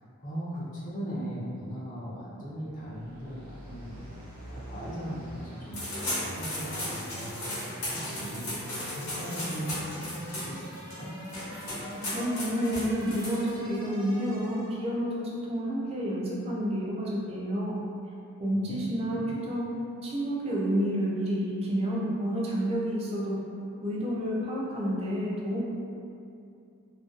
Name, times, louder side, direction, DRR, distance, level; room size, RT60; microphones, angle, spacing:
voice 1, 0.2-4.0 4.5-11.1 18.5-19.3, equal, 35° left, -8 dB, 0.5 m, -39 dB
sound 1, 2.6-14.9, right 1 dB, 90° right, 0.7 m, -43 dB
sound 2, 5.7-13.8, left 1 dB, 70° left, 1.0 m, -36 dB
voice 2, 12.0-17.8 18.4-19.7 20.0-23.5 23.8-25.6, equal, 25° right, -5 dB, 0.3 m, -30 dB
2.5 x 2.2 x 2.4 m, 2.5 s
head